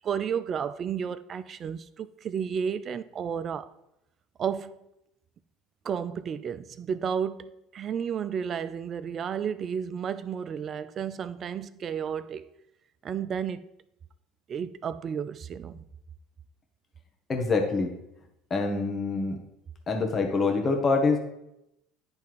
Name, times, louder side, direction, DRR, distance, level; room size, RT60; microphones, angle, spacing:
voice 1, 0.0-3.7 4.4-4.8 5.8-12.5 13.0-13.7 14.5-15.8, right 7 dB, 40° right, 0.4 m, -32 dB
voice 2, 17.3-17.9 18.5-19.4 19.9-21.2, left 3 dB, 30° left, 1.4 m, -25 dB
10.5 x 3.5 x 4.7 m
hypercardioid pair, 80°, 0 cm